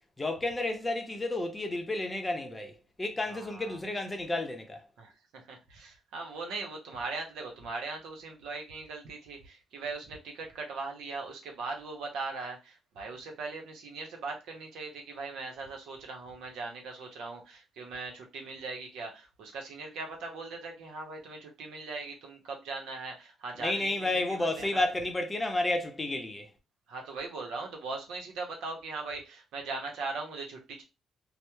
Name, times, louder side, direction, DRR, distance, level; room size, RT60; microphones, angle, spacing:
voice 1, 0.2-4.8 23.6-26.5, left 2 dB, 20° left, 0.6 m, -31 dB
voice 2, 3.3-3.8 5.0-24.8 26.9-30.8, right 3 dB, 85° right, 0.7 m, -40 dB
2.8 x 2.0 x 2.2 m
cardioid pair, 90°, 0 cm